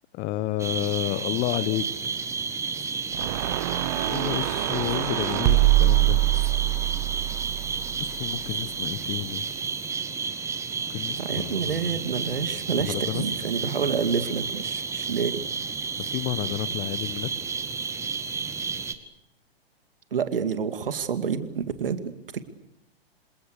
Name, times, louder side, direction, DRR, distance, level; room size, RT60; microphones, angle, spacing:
voice 1, 0.1-2.1 4.1-6.2 8.0-9.5 10.9-11.8 12.7-13.2 16.1-17.3, left 14 dB, 25° left, 16 dB, 1.4 m, -30 dB
sound 1, 0.6-18.9, right 5 dB, 10° right, 1.5 m, -31 dB
sound 2, 3.1-8.4, right 18 dB, 35° right, 1.2 m, -24 dB
voice 2, 11.2-15.4 20.1-22.4, right 6 dB, 60° right, 10 dB, 2.4 m, -28 dB
28.0 x 27.0 x 6.8 m, 0.86 s
figure-of-eight pair, 115°, 31 cm